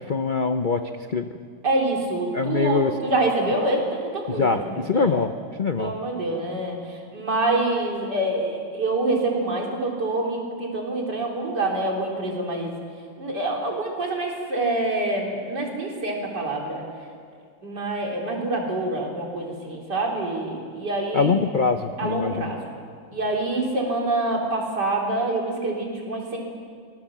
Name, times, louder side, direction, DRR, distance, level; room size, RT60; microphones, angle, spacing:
voice 1, 0.1-0.8 1.1-1.3 2.3-2.9 4.3-5.3 5.6-5.9 21.1-22.5, left 4 dB, 60° left, 8 dB, 0.5 m, -23 dB
voice 2, 1.6-5.2 5.8-12.7 13.2-16.8 17.6-21.3 22.0-22.6 23.1-26.4, right 2 dB, 65° right, 0 dB, 4.3 m, -26 dB
24.5 x 20.0 x 7.4 m, 2.1 s
omnidirectional pair, 2.0 m